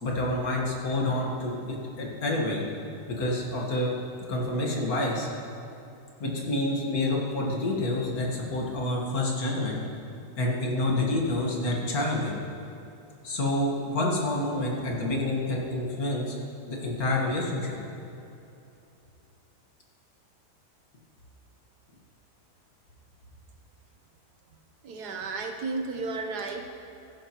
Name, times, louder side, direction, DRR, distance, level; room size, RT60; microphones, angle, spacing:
voice 1, 0.0-2.6 3.1-3.9 4.3-5.3 6.2-9.8 10.4-12.4 13.2-16.3 16.7-17.8, left 1 dB, 60° left, -2 dB, 2.0 m, -28 dB
voice 2, 24.8-26.7, right 3 dB, 75° right, 4 dB, 1.4 m, -33 dB
14.5 x 11.5 x 3.0 m, 2.8 s
omnidirectional pair, 1.8 m